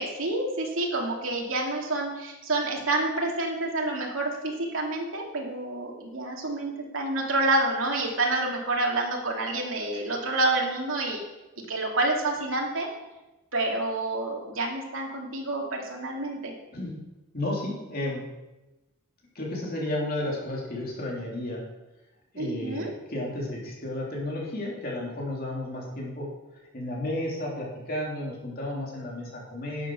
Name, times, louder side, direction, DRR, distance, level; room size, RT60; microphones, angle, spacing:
voice 1, 0.0-11.2 11.7-12.9 13.5-16.5 22.3-22.9, right 2 dB, 70° right, 0 dB, 2.6 m, -28 dB
voice 2, 17.3-18.2 19.3-21.6 22.3-26.3 26.7-29.9, left 1 dB, 45° left, -3 dB, 3.2 m, -32 dB
11.0 x 7.7 x 6.2 m, 1.0 s
head